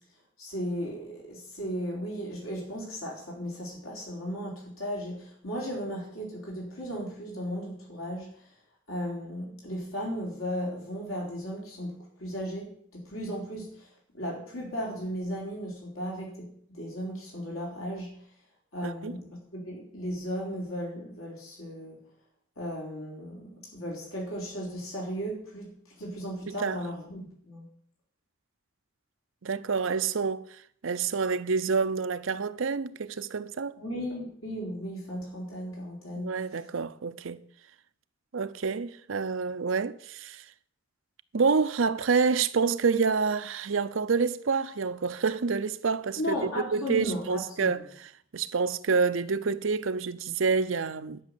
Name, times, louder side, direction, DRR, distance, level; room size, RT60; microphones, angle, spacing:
voice 1, 0.4-8.4 8.9-18.1 18.7-22.0 22.6-27.7 33.8-36.4 46.2-47.9, equal, 90° left, 4.1 m, -36 dB
voice 2, 18.8-19.2 26.5-26.8 29.4-33.8 36.2-37.4 38.3-40.4 41.3-51.2, right 5 dB, 70° right, 0.6 m, -28 dB
11.0 x 6.1 x 8.2 m
head